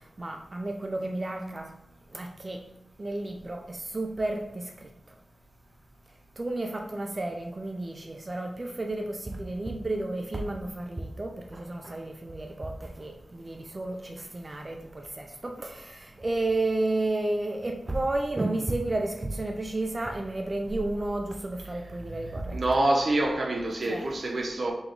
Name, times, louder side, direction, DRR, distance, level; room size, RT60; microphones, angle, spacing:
voice 1, 0.2-1.7 2.1-2.6 3.0-4.7 6.4-22.6 23.9-24.0, right 2 dB, 35° right, 0.4 m, -32 dB
voice 2, 22.5-24.7, right 1 dB, 55° right, 0.8 m, -26 dB
3.5 x 2.9 x 3.8 m
wide cardioid pair, 80°, 0 cm